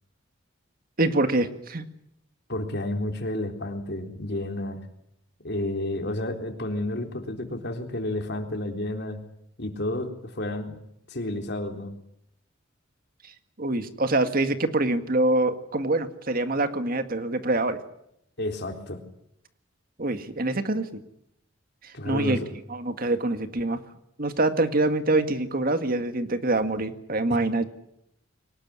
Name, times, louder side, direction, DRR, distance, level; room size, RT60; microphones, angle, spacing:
voice 1, 1.0-1.9 13.6-17.8 20.0-21.0 21.8-22.4 22.7-23.8 24.2-27.6, right 2 dB, 50° right, 9 dB, 1.9 m, -25 dB
voice 2, 2.5-4.9 5.4-9.2 9.6-10.8 11.1-11.9 18.4-19.0 21.9-22.5 27.3-27.4, left 1 dB, 60° left, 5 dB, 3.8 m, -31 dB
23.5 x 20.0 x 9.9 m, 0.77 s
head